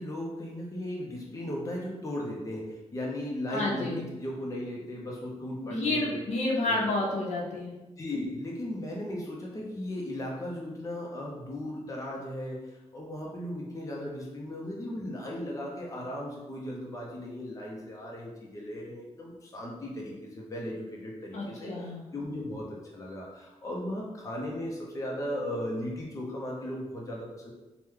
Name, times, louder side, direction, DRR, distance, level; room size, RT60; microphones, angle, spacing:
voice 1, 0.0-6.2 6.6-6.8 8.0-21.7 22.1-22.7 22.9-27.5, left 1 dB, 25° left, -3 dB, 0.7 m, -36 dB
voice 2, 3.5-4.0 5.6-7.7 21.3-22.0, left 2 dB, 70° left, -2 dB, 0.8 m, -30 dB
3.0 x 2.2 x 3.6 m, 1.1 s
cardioid pair, 100°, 12 cm